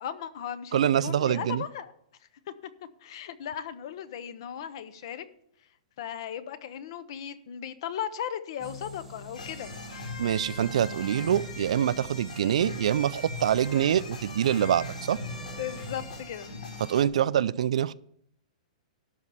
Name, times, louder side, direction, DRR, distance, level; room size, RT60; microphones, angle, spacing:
voice 1, 0.0-1.9 3.0-5.2 6.0-9.7 15.6-16.5, left 9 dB, 40° left, 14 dB, 0.6 m, -36 dB
voice 2, 0.7-1.6 10.2-15.2 16.8-17.9, right 10 dB, 55° right, 18 dB, 0.4 m, -25 dB
sound 1, 8.6-16.2, right 3 dB, ahead, 1.3 m, -45 dB
sound 2, 9.3-17.1, left 3 dB, 75° left, 4.2 m, -40 dB
12.5 x 4.3 x 8.2 m, 0.71 s
hypercardioid pair, 180°, 4 cm